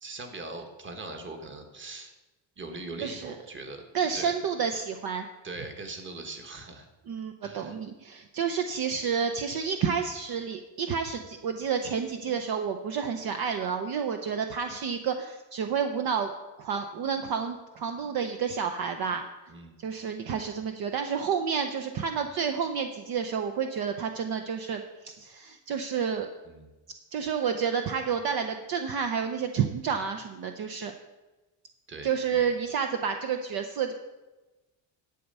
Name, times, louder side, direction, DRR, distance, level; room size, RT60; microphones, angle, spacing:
voice 1, 0.0-2.1 2.6-3.8 4.1-4.3 5.4-6.9 7.4-7.8 19.5-19.7 26.4-26.7 31.9-32.1, right 3 dB, 25° right, 5 dB, 1.4 m, -40 dB
voice 2, 3.0-3.4 3.9-5.3 7.1-16.3 16.6-19.2 19.8-26.3 27.1-30.9 32.0-33.9, right 6 dB, 55° right, 6 dB, 0.8 m, -30 dB
11.5 x 8.1 x 5.5 m, 1.1 s
cardioid pair, 155°, 44 cm